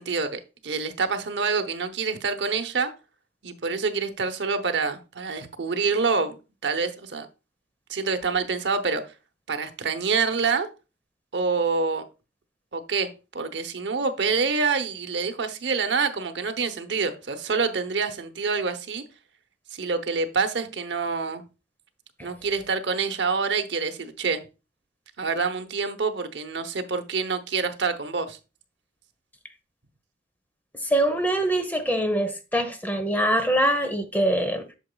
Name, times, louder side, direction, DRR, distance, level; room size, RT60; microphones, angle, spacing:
voice 1, 0.0-2.9 3.4-6.4 6.6-7.3 7.9-9.0 9.5-10.7 11.3-12.1 12.7-19.0 19.7-21.4 22.2-24.4 25.2-28.4, right 4 dB, 75° right, 0.9 m, -26 dB
voice 2, 30.8-34.6, right 1 dB, 10° left, 0.9 m, -23 dB
8.2 x 6.9 x 2.2 m
head